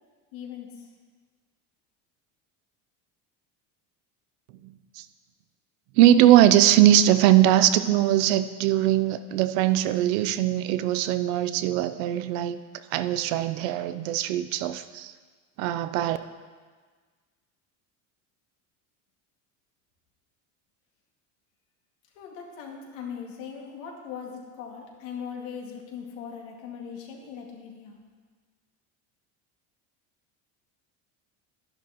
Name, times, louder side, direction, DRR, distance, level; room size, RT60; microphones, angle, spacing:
voice 1, 0.3-0.9 22.1-28.0, left 7 dB, 80° left, -1 dB, 2.2 m, -39 dB
voice 2, 4.6-5.0 6.0-12.6 12.9-15.1 15.6-16.2, right 12 dB, 90° right, 12 dB, 0.7 m, -21 dB
11.5 x 11.0 x 3.0 m, 1.5 s
cardioid pair, 155°, 38 cm